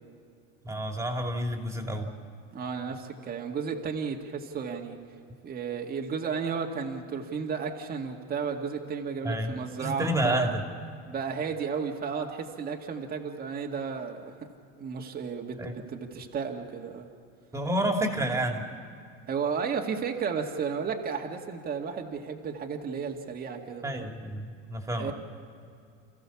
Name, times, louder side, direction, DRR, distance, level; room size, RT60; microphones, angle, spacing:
voice 1, 0.6-2.1 9.2-10.6 15.6-15.7 17.5-18.6 23.8-25.1, right 1 dB, 10° right, 3 dB, 2.6 m, -29 dB
voice 2, 2.5-5.0 5.4-10.5 11.1-14.5 14.8-17.1 19.3-24.1 25.0-25.1, right 6 dB, 30° right, 1 dB, 2.0 m, -33 dB
29.5 x 15.0 x 7.1 m, 2.5 s
supercardioid pair, 130°, 31 cm